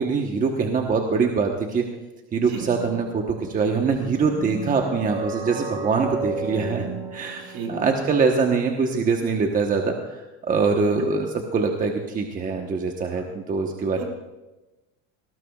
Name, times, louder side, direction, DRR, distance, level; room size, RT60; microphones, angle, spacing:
voice 1, 0.0-1.8 2.3-14.0, right 4 dB, 25° right, 3 dB, 1.1 m, -23 dB
sound 1, 2.6-8.0, right 3 dB, 75° right, 5.4 m, -34 dB
voice 2, 7.5-7.9 11.0-11.1 13.2-13.3 14.0-14.1, right 6 dB, 55° right, 2 dB, 4.7 m, -33 dB
19.5 x 18.5 x 2.4 m, 1.1 s
supercardioid pair, 130°, 35 cm